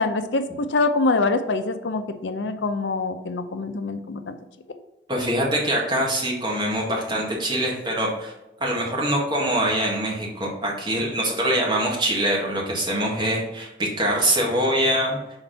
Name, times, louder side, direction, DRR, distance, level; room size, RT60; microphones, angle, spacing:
voice 1, 0.0-4.4, left 3 dB, 85° left, 9 dB, 0.6 m, -24 dB
voice 2, 5.1-8.3 8.6-15.2, right 1 dB, 25° right, -3 dB, 1.7 m, -24 dB
5.9 x 4.4 x 4.0 m, 0.97 s
head